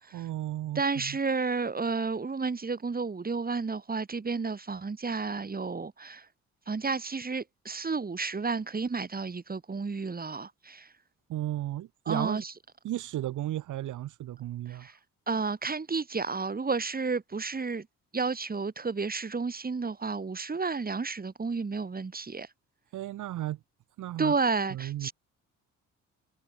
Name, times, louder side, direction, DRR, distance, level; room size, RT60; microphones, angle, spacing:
voice 1, 0.1-1.2 11.3-12.4 12.8-14.9 22.9-23.6 24.0-24.4 24.7-25.1, right 13 dB, 80° right, 3.0 m, -34 dB
voice 2, 0.8-6.3 6.7-10.9 12.1-12.5 14.7-15.0 15.3-17.9 18.1-22.5 24.2-25.1, right 4 dB, 30° right, 6.9 m, -31 dB
cardioid pair, 90°, 30 cm